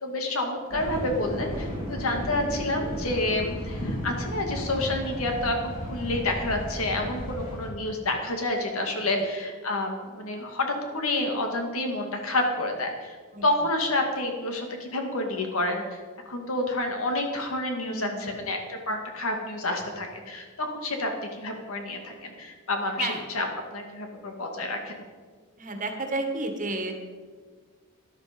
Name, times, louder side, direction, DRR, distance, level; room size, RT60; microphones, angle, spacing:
voice 1, 0.0-13.2 13.4-21.1 21.4-23.5 23.7-25.0, left 2 dB, 70° left, 3 dB, 2.1 m, -29 dB
sound 1, 0.7-7.7, equal, 40° left, 4.8 m, -34 dB
voice 2, 17.9-18.4 23.0-23.2 25.6-26.9, right 2 dB, 35° right, 5 dB, 1.7 m, -31 dB
13.0 x 11.0 x 5.2 m, 1.5 s
head